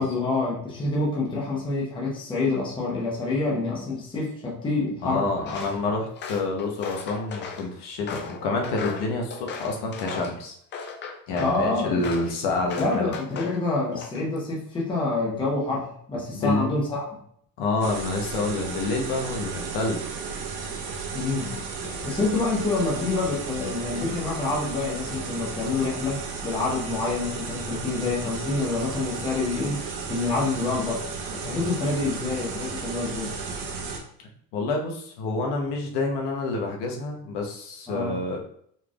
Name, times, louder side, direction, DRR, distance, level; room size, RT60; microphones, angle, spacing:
voice 1, 0.0-5.2 11.4-12.1 12.8-17.0 21.1-21.6 22.0-31.1 31.3-33.3 37.9-38.2, left 3 dB, 10° left, -5 dB, 0.9 m, -27 dB
voice 2, 5.0-10.6 11.3-13.1 16.3-16.7 17.6-20.0 34.5-38.4, left 3 dB, 65° left, 1 dB, 1.0 m, -28 dB
Walk footsteps, 5.4-5.8 6.2-7.7 8.1-10.4 10.7-11.6 12.0-12.3 12.7-13.6 13.9-14.4, left 5 dB, 30° left, 0.4 m, -36 dB
sound 1, 17.8-34.0, right 5 dB, 70° right, 0.9 m, -34 dB
4.2 x 3.3 x 2.4 m, 0.65 s
cardioid pair, 155°, 43 cm